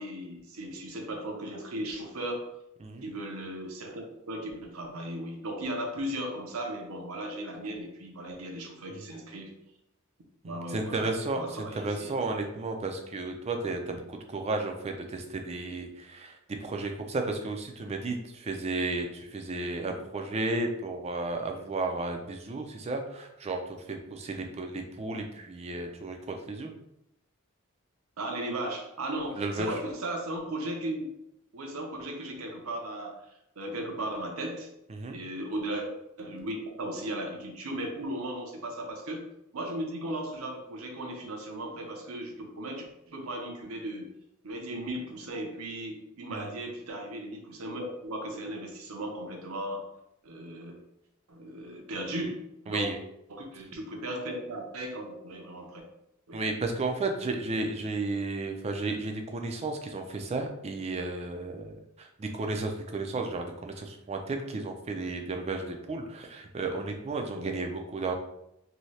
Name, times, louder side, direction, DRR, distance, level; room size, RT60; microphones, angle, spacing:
voice 1, 0.0-2.4 3.0-9.5 10.4-11.1 11.3-12.1 28.2-31.1 31.5-33.2 33.6-34.7 35.1-35.9 36.2-39.2 39.5-44.1 44.4-49.8 50.2-50.8 51.3-52.4 52.7-52.9 53.3-55.9 56.3-56.4 67.3-67.6, right 1 dB, 75° right, 2 dB, 0.7 m, -36 dB
voice 2, 10.4-26.7 29.4-29.8 34.9-35.2 46.3-46.5 52.7-53.0 56.3-68.1, right 3 dB, 30° right, 4 dB, 0.4 m, -33 dB
2.7 x 2.7 x 3.2 m, 0.83 s
head